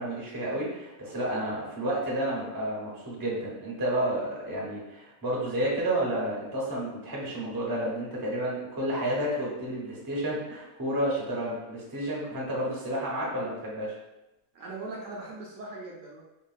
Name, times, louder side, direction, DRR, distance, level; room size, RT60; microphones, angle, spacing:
voice 1, 0.0-13.9, right 1 dB, 25° right, -5 dB, 0.5 m, -31 dB
voice 2, 14.5-16.2, right 2 dB, 70° right, -3 dB, 0.9 m, -40 dB
3.7 x 2.3 x 2.4 m, 0.98 s
omnidirectional pair, 1.5 m